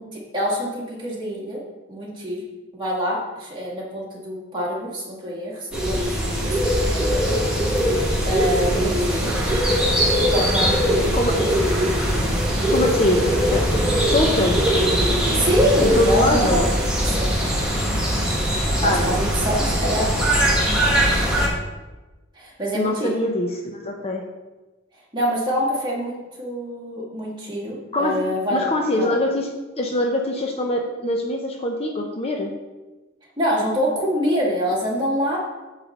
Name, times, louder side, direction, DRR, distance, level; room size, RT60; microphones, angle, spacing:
voice 1, 0.0-1.6 1.9-2.4 2.7-7.3 8.2-9.3 10.3-11.4 15.3-16.7 17.1-17.3 18.8-20.7 22.3-23.1 25.1-28.7 29.0-29.2 33.4-35.4, equal, 25° right, -5 dB, 1.9 m, -25 dB
sound 1, 5.7-21.5, equal, 5° right, 1.4 m, -21 dB
voice 2, 12.7-13.2 13.5-13.6 14.0-14.7 15.8-16.7 18.8-19.1 22.7-24.2 27.9-28.2 28.5-29.5 29.8-32.5, left 1 dB, 30° left, 1 dB, 0.6 m, -23 dB
8.7 x 3.2 x 6.4 m, 1.2 s
head